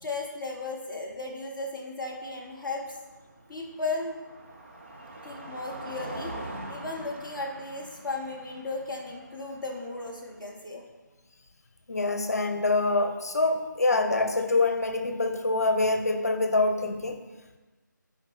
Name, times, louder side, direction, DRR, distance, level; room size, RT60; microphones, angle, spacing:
voice 1, 0.0-3.0 3.5-4.2 5.2-6.3 6.7-10.8, left 3 dB, ahead, -12 dB, 0.5 m, -35 dB
Car passing by, 2.1-10.4, right 1 dB, 40° right, 0.8 m, -43 dB
voice 2, 11.9-17.2, left 2 dB, 55° left, 7 dB, 0.7 m, -25 dB
10.5 x 4.8 x 3.2 m, 1.2 s
figure-of-eight pair, 160°, 10 cm